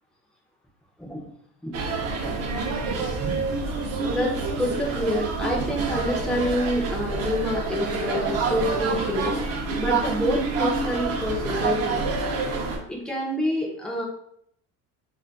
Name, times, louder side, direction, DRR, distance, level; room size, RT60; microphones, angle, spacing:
sound 1, 1.7-12.8, right 4 dB, 50° right, 0.5 m, -27 dB
voice 1, 4.1-9.3 9.8-12.0 12.9-14.1, equal, ahead, -2 dB, 0.3 m, -27 dB
2.5 x 2.3 x 3.8 m, 0.69 s
cardioid pair, 175°, 33 cm